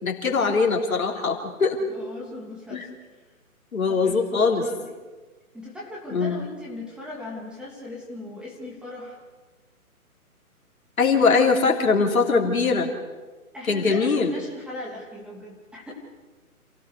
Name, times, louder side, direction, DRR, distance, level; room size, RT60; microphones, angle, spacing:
voice 1, 0.0-1.8 2.7-2.9 3.7-4.6 6.1-6.5 11.0-12.9 13.7-14.3, left 4 dB, 65° left, 1 dB, 3.5 m, -21 dB
voice 2, 1.9-3.2 3.9-5.0 5.5-9.2 13.5-15.9, left 2 dB, ahead, -4 dB, 2.7 m, -39 dB
28.5 x 16.5 x 6.5 m, 1.3 s
figure-of-eight pair, 145°, 44 cm